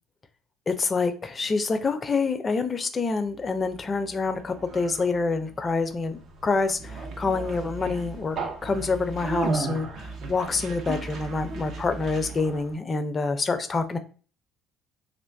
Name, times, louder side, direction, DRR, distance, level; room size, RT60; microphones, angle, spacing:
voice 1, 0.7-8.4 8.6-14.0, left 4 dB, 30° left, 0.5 m, -27 dB
Conversation, 3.3-12.7, right 3 dB, 50° right, 0.6 m, -35 dB
2.4 x 2.2 x 3.3 m
figure-of-eight pair, 55°, 0 cm